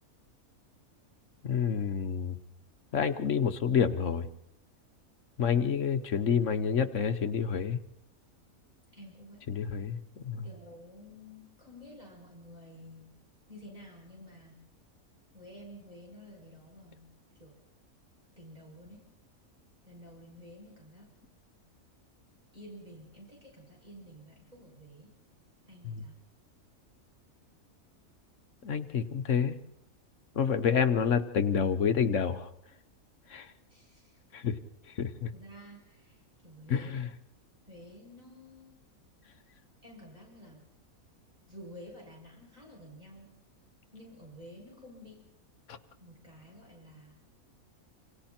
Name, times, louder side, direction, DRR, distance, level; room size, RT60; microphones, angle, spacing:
voice 1, 1.4-2.4 2.9-4.3 5.4-7.8 9.5-10.5 25.8-26.0 28.6-29.6 30.3-32.5 33.3-33.5 34.3-34.6 35.0-35.3 36.7-37.1 45.7-45.8, left 7 dB, 60° left, 9 dB, 1.4 m, -28 dB
voice 2, 8.9-9.5 10.4-13.2 13.5-14.6 15.3-17.6 18.4-19.1 19.8-21.1 22.5-25.1 25.7-26.1 33.7-34.2 35.3-36.9 37.7-38.8 39.8-40.7 41.5-43.4 43.9-45.2 46.0-47.2, equal, 30° right, -3 dB, 7.3 m, -51 dB
28.0 x 26.5 x 4.4 m, 0.78 s
omnidirectional pair, 1.5 m